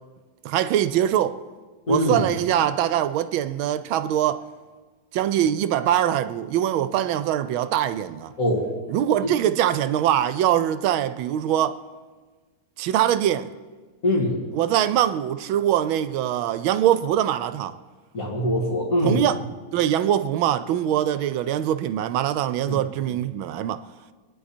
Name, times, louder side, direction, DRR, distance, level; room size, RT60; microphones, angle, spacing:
voice 1, 0.4-1.4 1.9-4.5 5.1-8.3 8.9-11.8 12.8-13.5 14.5-17.8 19.0-19.4 19.7-23.9, right 11 dB, 80° right, 1.3 m, -23 dB
voice 2, 1.9-2.3 8.4-8.7 9.2-9.3 14.0-14.4 18.1-19.2 22.6-22.8 23.1-23.2, left 1 dB, 40° left, 2.5 m, -23 dB
24.0 x 10.0 x 4.3 m
omnidirectional pair, 2.3 m